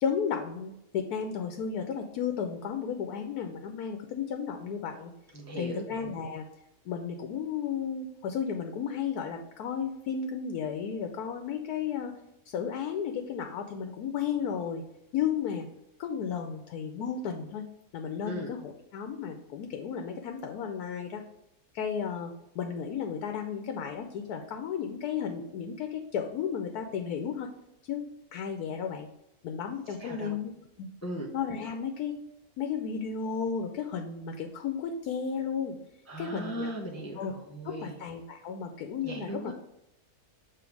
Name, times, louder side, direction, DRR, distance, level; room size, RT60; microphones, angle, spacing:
voice 1, 0.0-5.1 5.6-6.5 6.9-12.1 12.5-14.8 15.1-15.7 16.0-17.7 17.9-21.2 21.7-27.5 27.9-28.1 28.3-29.1 29.4-30.5 30.8-30.9 31.3-32.2 32.6-35.8 36.2-36.7 37.2-37.3 37.6-39.5, left 7 dB, 85° left, 5 dB, 1.1 m, -33 dB
voice 2, 5.3-5.8 18.3-18.5 30.0-30.3 31.0-31.3 36.1-37.9 39.0-39.5, right 1 dB, 20° left, -1 dB, 0.4 m, -37 dB
7.0 x 3.1 x 4.6 m, 0.83 s
omnidirectional pair, 1.6 m